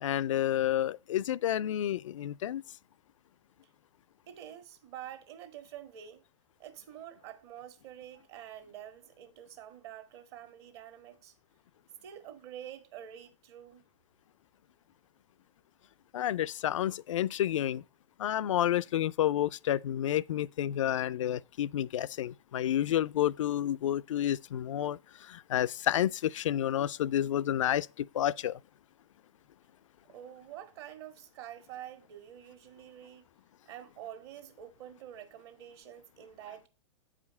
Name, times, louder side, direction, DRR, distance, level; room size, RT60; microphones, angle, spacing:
voice 1, 0.0-2.6 16.1-17.8 18.2-28.6, left 11 dB, 80° left, 0.4 m, -30 dB
voice 2, 4.3-6.2 6.6-11.3 12.0-13.8 30.1-33.2 33.6-36.7, right 11 dB, 55° right, 1.6 m, -47 dB
8.2 x 5.0 x 5.1 m
hypercardioid pair, 120°, 16 cm